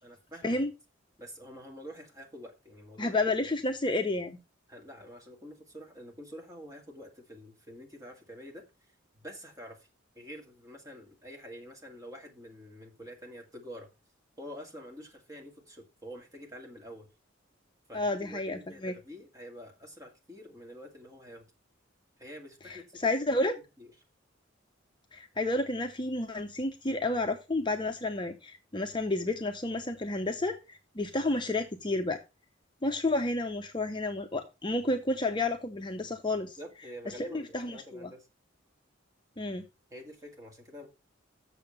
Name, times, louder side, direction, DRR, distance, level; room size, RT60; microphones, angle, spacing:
voice 1, 0.0-0.6 1.2-3.2 4.7-8.6 9.2-9.9 10.1-13.9 14.4-17.1 17.9-21.5 22.2-23.1 23.8-23.9 36.6-38.3 39.9-40.9, equal, 20° right, 2.2 m, -47 dB
voice 2, 3.0-4.4 17.9-18.9 22.7-23.5 25.1-32.2 32.8-36.6 37.1-38.1 39.4-39.6, left 2 dB, 25° left, 0.7 m, -31 dB
7.1 x 6.9 x 5.5 m
head